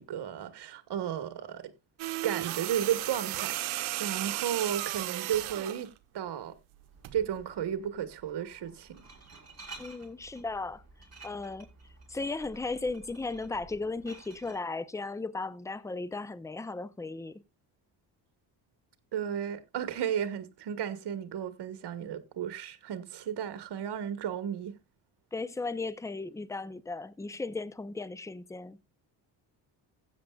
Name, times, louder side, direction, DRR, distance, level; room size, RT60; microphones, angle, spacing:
voice 1, 0.0-1.7 2.2-5.9 6.1-6.5 7.1-9.0 19.1-24.7, right 9 dB, 55° right, 1.4 m, -34 dB
sound 1, 2.0-5.9 7.0-7.2, right 16 dB, 75° right, 1.0 m, -34 dB
Glass, 6.8-14.6, right 3 dB, 35° right, 5.6 m, -52 dB
voice 2, 9.8-10.8 11.2-11.7 12.1-17.4 25.3-28.8, left 3 dB, 5° left, 0.7 m, -36 dB
15.5 x 8.5 x 2.4 m
supercardioid pair, 65°, 48 cm